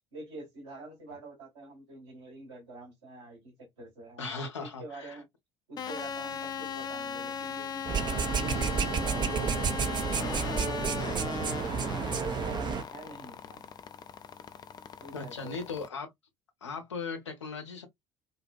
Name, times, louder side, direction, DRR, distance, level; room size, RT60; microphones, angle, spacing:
voice 1, 0.1-5.2 5.7-10.5 10.9-13.7 15.0-15.7, right 2 dB, 75° right, 1.3 m, -47 dB
voice 2, 4.2-5.2 8.5-8.9 15.1-16.1 16.6-17.9, left 4 dB, 80° left, 0.7 m, -38 dB
sound 1, 5.8-15.9, left 7 dB, 30° left, 0.3 m, -38 dB
sound 2, 7.9-12.8, right 6 dB, 30° right, 0.4 m, -30 dB
2.6 x 2.2 x 2.3 m
figure-of-eight pair, 55°, 15 cm